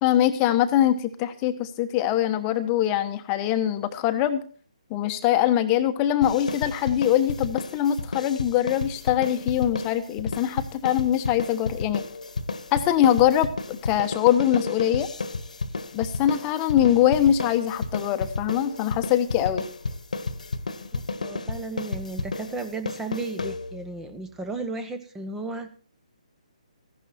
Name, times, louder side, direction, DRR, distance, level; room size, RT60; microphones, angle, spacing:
voice 1, 0.0-4.4 4.9-12.0 12.7-15.1 15.9-19.6, left 11 dB, 25° left, 9 dB, 1.2 m, -23 dB
sound 1, 6.2-24.0, left 3 dB, 70° left, 1.5 m, -32 dB
voice 2, 20.9-25.7, right 3 dB, 10° right, 9 dB, 1.1 m, -34 dB
15.5 x 12.0 x 4.4 m, 0.42 s
figure-of-eight pair, 145°, 4 cm